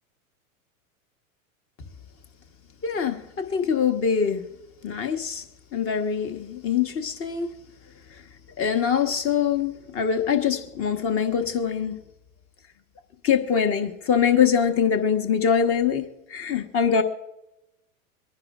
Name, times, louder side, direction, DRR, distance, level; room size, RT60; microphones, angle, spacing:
voice 1, 2.8-4.4 4.8-5.4 5.7-7.5 8.1-8.2 8.6-12.0 13.2-17.0, left 7 dB, 30° left, 1.4 m, -23 dB
24.0 x 10.5 x 2.6 m
hypercardioid pair, 100°, 43 cm